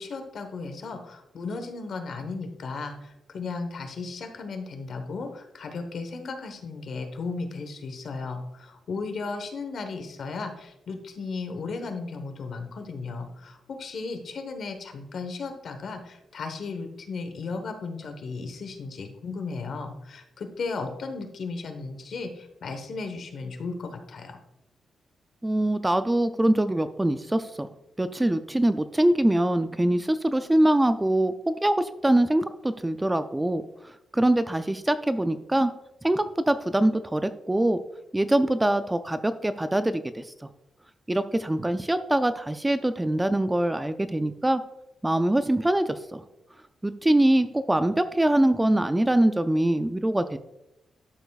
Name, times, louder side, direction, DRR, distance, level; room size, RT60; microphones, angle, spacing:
voice 1, 0.0-24.4, left 4 dB, 60° left, 6 dB, 1.1 m, -35 dB
voice 2, 25.4-27.7 28.0-35.7 36.0-37.8 38.1-40.3 41.1-44.6 45.0-46.2 46.8-50.4, right 1 dB, 10° right, 11 dB, 0.3 m, -23 dB
12.0 x 6.8 x 2.3 m, 0.90 s
wide cardioid pair, 145°, 0 cm